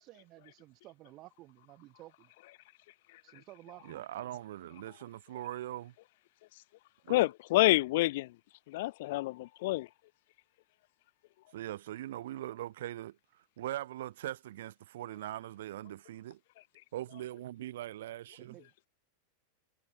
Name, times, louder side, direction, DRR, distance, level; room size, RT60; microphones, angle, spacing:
voice 1, 0.0-2.3 3.2-4.1 18.4-18.9, right 17 dB, 35° right, 2.0 m, -54 dB
voice 2, 3.8-5.9 7.0-7.3 11.5-16.4 16.9-18.6, right 13 dB, 55° right, 0.8 m, -41 dB
voice 3, 7.1-8.3 8.7-9.9, left 19 dB, 50° left, 0.5 m, -28 dB
figure-of-eight pair, 90°, 0 cm